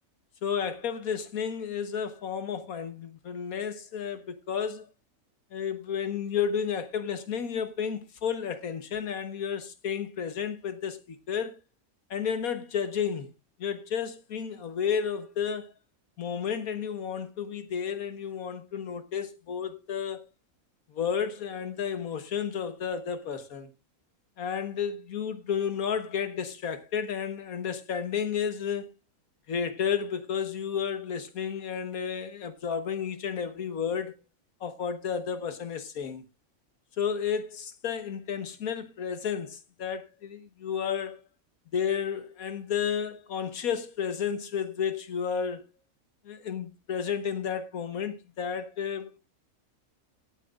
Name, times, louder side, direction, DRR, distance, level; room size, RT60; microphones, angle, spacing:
voice 1, 0.4-4.9 5.5-11.6 12.1-13.3 13.6-15.7 16.2-20.2 20.9-23.7 24.4-28.8 29.5-34.1 34.6-36.2 37.0-41.2 41.7-45.6 46.2-49.2, left 7 dB, 80° left, 1.6 m, -32 dB
18.0 x 9.3 x 2.5 m
omnidirectional pair, 1.5 m